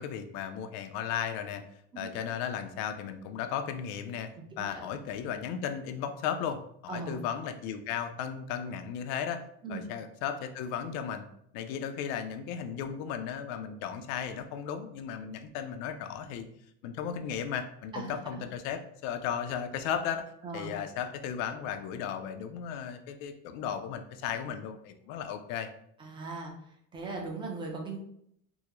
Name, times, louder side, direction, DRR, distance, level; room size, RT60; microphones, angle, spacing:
voice 1, 0.0-1.6 2.0-4.3 4.6-9.4 9.7-11.2 11.5-16.5 16.8-20.2 20.5-25.7, left 8 dB, 65° left, 8 dB, 0.5 m, -35 dB
voice 2, 17.9-18.4 20.4-20.7 26.0-26.5 26.9-28.0, right 3 dB, 15° right, 0 dB, 0.5 m, -39 dB
3.5 x 2.0 x 2.9 m, 0.71 s
cardioid pair, 155°, 34 cm